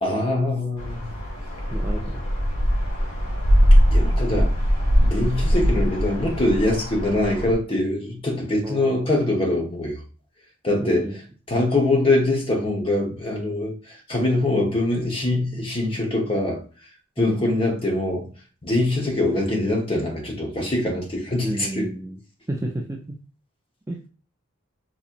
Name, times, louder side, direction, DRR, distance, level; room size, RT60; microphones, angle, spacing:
voice 1, 0.0-1.1 3.9-4.5 5.0-10.0 10.6-11.1 11.5-16.6 17.2-18.3 18.6-21.9, left 2 dB, 25° left, 1.0 m, -23 dB
sound 1, 0.8-7.5, equal, 70° left, 1.5 m, -21 dB
voice 2, 1.7-2.2 8.6-9.0 10.8-11.2 17.2-17.4 21.4-22.2 22.5-23.0 23.9-24.1, right 1 dB, 15° right, 0.3 m, -31 dB
4.1 x 2.9 x 2.5 m
head